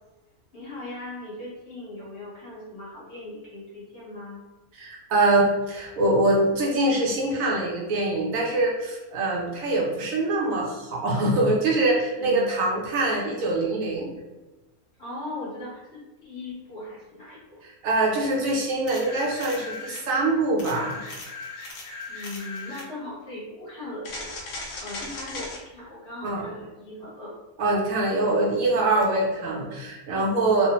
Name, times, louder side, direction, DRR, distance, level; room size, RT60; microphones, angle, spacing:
voice 1, 0.5-4.4 12.1-12.5 15.0-17.6 22.1-24.3 24.8-27.3, left 2 dB, 50° left, -8 dB, 1.4 m, -39 dB
voice 2, 4.7-14.1 17.6-21.0 26.2-26.5 27.6-30.7, right 2 dB, 70° right, -2 dB, 1.0 m, -24 dB
sound 1, 18.9-20.1 20.6-22.9 24.0-25.6 29.0-29.1, left 3 dB, 70° left, 1.0 m, -37 dB
3.0 x 2.0 x 2.8 m, 1.1 s
omnidirectional pair, 1.5 m